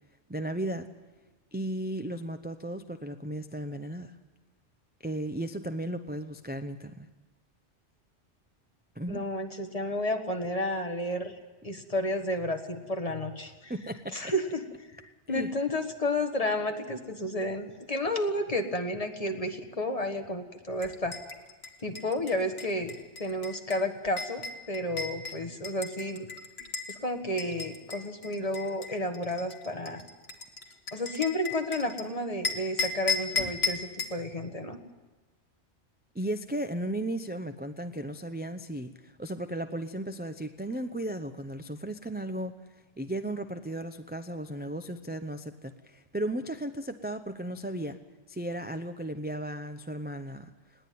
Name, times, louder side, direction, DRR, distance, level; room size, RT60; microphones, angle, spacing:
voice 1, 0.3-0.9 1.5-4.1 5.0-7.1 9.0-9.2 13.7-14.2 15.3-15.5 36.1-42.6 43.0-48.0 48.3-50.5, right 1 dB, 10° right, 8 dB, 0.6 m, -35 dB
voice 2, 9.1-11.4 11.6-13.7 14.1-14.6 14.9-21.2 21.8-22.9 23.2-26.3 26.9-30.0 30.9-34.8, left 1 dB, 30° left, 5 dB, 1.6 m, -31 dB
sound 1, 20.8-27.0 27.4-32.0 32.4-34.2, left 4 dB, 60° left, 1.9 m, -35 dB
20.0 x 17.5 x 9.4 m, 1.2 s
omnidirectional pair, 1.2 m